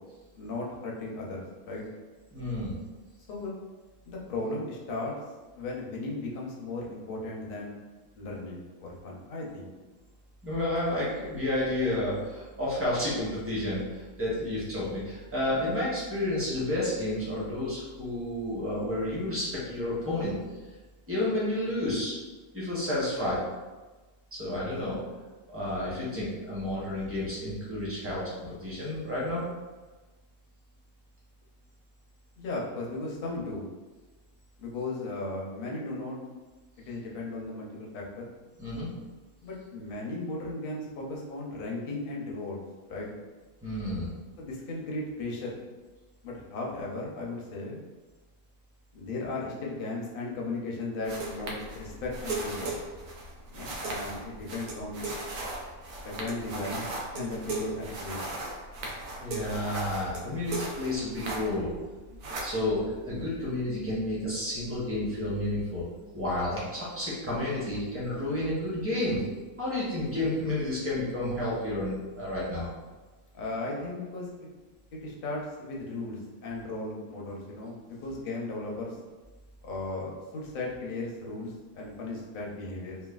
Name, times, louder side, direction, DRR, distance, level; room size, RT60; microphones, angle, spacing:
voice 1, 0.3-1.8 3.3-3.5 4.0-5.1 5.6-7.8 8.2-9.7 32.4-33.7 34.6-36.2 36.9-38.3 39.4-42.6 42.9-43.1 44.4-45.6 46.2-47.8 48.9-52.8 53.5-55.2 56.0-58.2 73.3-74.5 74.9-79.0 79.6-83.0, left 2 dB, 60° left, -2 dB, 0.5 m, -36 dB
voice 2, 2.3-2.8 10.4-20.4 21.1-22.1 22.5-23.4 24.3-25.0 25.5-29.5 38.6-38.9 43.6-44.1 59.2-61.7 62.4-65.8 66.1-69.2 69.6-72.7, left 1 dB, 15° right, -8 dB, 0.5 m, -31 dB
sound 1, 51.0-61.8 62.0-63.4, right 2 dB, 90° right, 1.1 m, -37 dB
3.1 x 2.2 x 2.3 m, 1.2 s
omnidirectional pair, 1.5 m